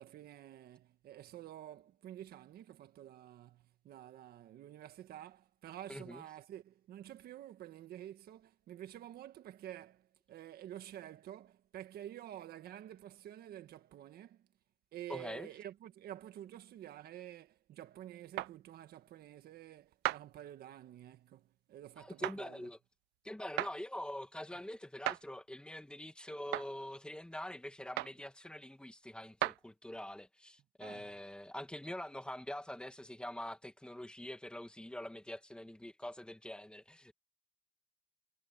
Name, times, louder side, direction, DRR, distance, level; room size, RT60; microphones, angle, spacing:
voice 1, 0.0-14.5 14.9-22.7 30.8-31.1, right 12 dB, 65° right, 1.6 m, -50 dB
voice 2, 5.9-6.2 15.1-15.5 22.0-22.8 23.2-37.1, left 1 dB, 5° left, 2.1 m, -45 dB
sound 1, 18.4-18.5 20.0-20.2 22.2-22.4 23.6-23.7 25.0-25.2 26.5-26.7 28.0-28.2 29.4-29.6, right 19 dB, 85° right, 0.5 m, -34 dB
cardioid pair, 110°, 17 cm